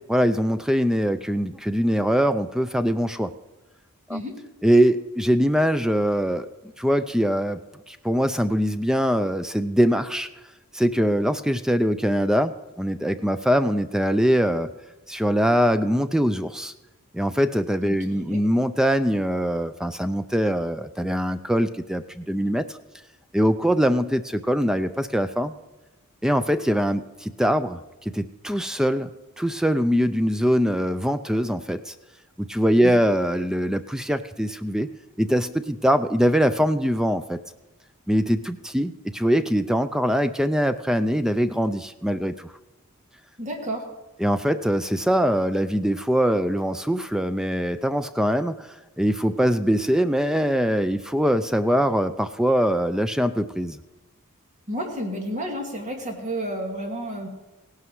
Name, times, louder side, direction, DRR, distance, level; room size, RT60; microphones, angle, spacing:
voice 1, 0.1-3.3 4.1-4.2 4.6-6.5 6.8-7.6 7.9-10.3 10.7-14.7 15.1-16.7 17.1-22.8 23.3-25.5 26.2-29.1 29.4-31.9 32.4-34.9 35.2-37.4 38.1-42.5 44.2-53.8, equal, 5° right, 11 dB, 0.4 m, -22 dB
voice 2, 17.8-18.4 32.8-32.9 43.4-43.9 54.7-57.3, equal, 35° right, 2 dB, 2.3 m, -31 dB
17.0 x 11.5 x 4.8 m, 1.1 s
head